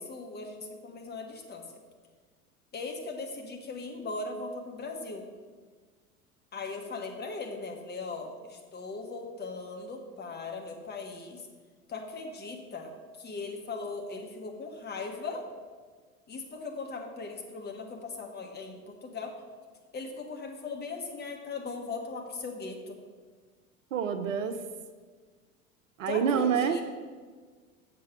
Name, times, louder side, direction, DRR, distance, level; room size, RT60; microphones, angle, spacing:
voice 1, 0.0-1.6 2.7-5.3 6.5-11.5 11.9-12.9 13.2-15.4 16.3-19.3 19.9-23.0 26.1-26.8, left 3 dB, 25° left, 2 dB, 1.4 m, -39 dB
voice 2, 23.9-24.6 26.0-26.8, right 7 dB, 60° right, 9 dB, 0.8 m, -27 dB
7.6 x 6.8 x 5.8 m, 1.5 s
figure-of-eight pair, 80°, 43 cm